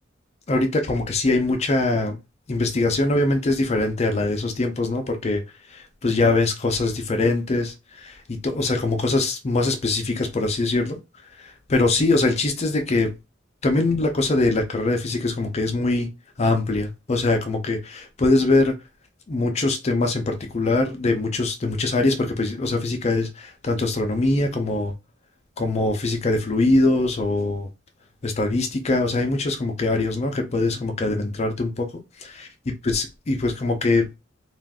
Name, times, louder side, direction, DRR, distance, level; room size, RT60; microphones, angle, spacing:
voice 1, 0.5-2.2 2.5-5.4 5.7-11.0 11.4-13.1 13.6-16.1 16.4-18.8 19.3-24.9 25.6-27.7 28.2-31.9 32.2-32.5 32.8-34.1, left 2 dB, 35° left, 0.4 m, -22 dB
2.5 x 2.3 x 3.4 m
head